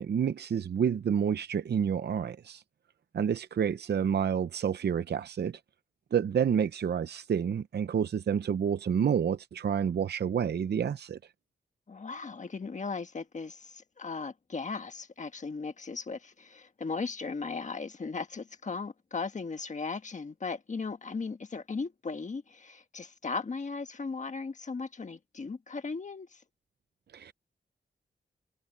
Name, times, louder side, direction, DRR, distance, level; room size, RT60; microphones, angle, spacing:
voice 1, 0.0-2.6 3.1-5.6 6.1-11.2 27.1-27.3, right 8 dB, 65° right, 0.6 m, -29 dB
voice 2, 11.9-26.4, left 4 dB, 40° left, 1.4 m, -37 dB
wide cardioid pair, 115°, 18 cm